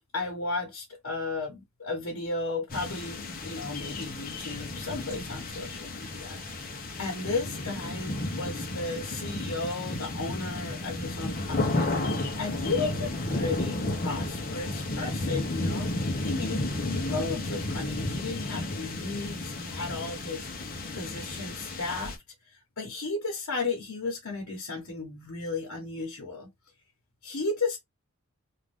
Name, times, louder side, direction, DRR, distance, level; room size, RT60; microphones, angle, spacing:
voice 1, 0.1-15.9 16.2-22.2 22.5-26.5 27.2-27.8, left 3 dB, 75° left, 0.9 m, -34 dB
sound 1, 2.7-22.2, left 2 dB, 40° left, 0.7 m, -33 dB
2.6 x 2.4 x 3.4 m
head